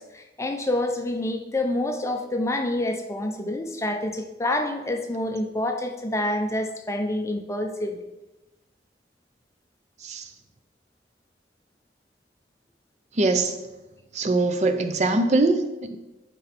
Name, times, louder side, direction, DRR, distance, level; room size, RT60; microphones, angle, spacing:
voice 1, 0.0-8.0, left 1 dB, 15° left, 4 dB, 0.6 m, -27 dB
voice 2, 13.2-13.6 14.1-16.0, right 2 dB, 40° right, 8 dB, 0.5 m, -22 dB
11.0 x 4.4 x 4.2 m, 1.0 s
head